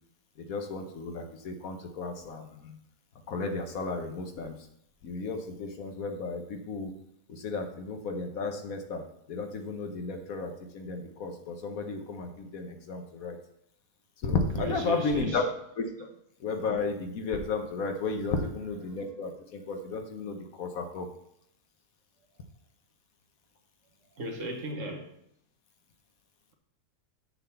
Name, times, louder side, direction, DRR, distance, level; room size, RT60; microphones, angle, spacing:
voice 1, 0.4-2.8 3.3-4.6 5.0-6.9 7.3-13.4 14.2-15.4 15.8-16.1 16.4-21.1, left 4 dB, 60° left, 1.3 m, -33 dB
voice 2, 14.6-15.4 24.2-25.1, right 1 dB, 55° right, 1.3 m, -35 dB
8.6 x 3.9 x 6.9 m
omnidirectional pair, 1.7 m